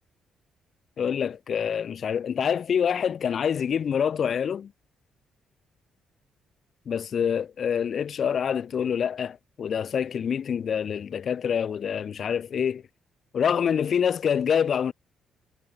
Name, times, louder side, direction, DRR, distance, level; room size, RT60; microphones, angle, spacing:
voice 1, 1.0-4.7 6.9-12.8 13.3-14.9, left 7 dB, 55° left, 5.9 m, -26 dB
cardioid pair, 90°, 0 cm